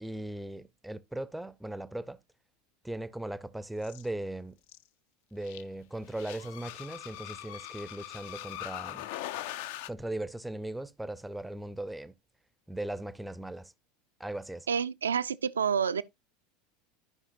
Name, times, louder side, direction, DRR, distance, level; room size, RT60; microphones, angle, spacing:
voice 1, 0.0-2.2 2.8-4.6 5.3-9.1 9.9-12.1 12.7-13.7 14.2-14.7, right 1 dB, 5° right, 0.5 m, -38 dB
sound 1, 3.8-4.1 4.7-4.8 5.4-5.6 6.1-9.9, left 13 dB, 55° left, 0.4 m, -41 dB
voice 2, 14.7-16.0, right 7 dB, 75° right, 0.4 m, -28 dB
13.5 x 5.5 x 2.5 m
figure-of-eight pair, 75°, 0 cm